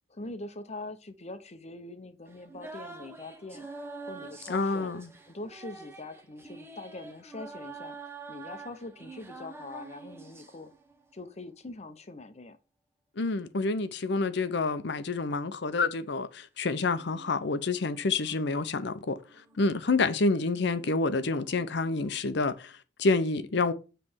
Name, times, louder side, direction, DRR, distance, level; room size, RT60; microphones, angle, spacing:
voice 1, 0.1-3.7 4.0-4.9 5.3-8.0 8.3-10.7 11.1-12.6, left 2 dB, 35° left, 0.8 m, -43 dB
sound 1, 2.3-11.1 16.9-22.2, right 3 dB, 15° right, 0.9 m, -47 dB
voice 2, 4.5-5.1 13.2-19.2 19.6-23.7, left 3 dB, 65° left, 0.7 m, -28 dB
7.5 x 3.3 x 6.1 m
head